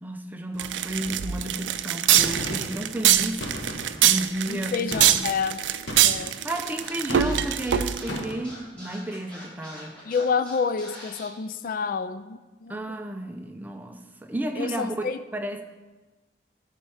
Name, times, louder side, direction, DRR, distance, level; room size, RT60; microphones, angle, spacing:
voice 1, 0.0-3.4 4.0-5.3 6.4-9.9 12.7-15.6, right 1 dB, 10° right, 0.5 m, -32 dB
sound 1, 0.6-8.2, right 11 dB, 85° right, 0.4 m, -23 dB
Gunshot gunfire, 2.2-2.8 3.4-4.1 4.9-5.3 5.9-6.3 7.1-7.6 8.1-8.5, equal, 80° left, 1.5 m, -35 dB
voice 2, 4.5-5.6 6.0-6.4 10.0-13.0 14.6-15.2, left 5 dB, 50° left, 0.3 m, -29 dB
Scratching (performance technique), 6.5-11.2, equal, 5° left, 3.4 m, -43 dB
13.0 x 4.5 x 4.8 m
head